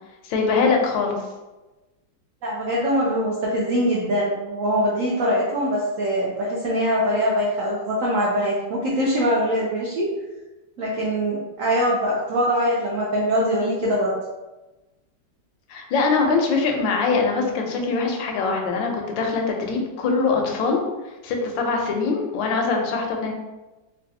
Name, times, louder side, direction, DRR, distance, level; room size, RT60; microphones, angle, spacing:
voice 1, 0.2-1.2 15.7-20.8 21.2-23.3, left 4 dB, 80° left, 2 dB, 1.3 m, -22 dB
voice 2, 2.4-10.1 10.8-14.1, equal, 80° right, -5 dB, 0.7 m, -23 dB
4.0 x 2.3 x 2.6 m, 1.1 s
omnidirectional pair, 2.1 m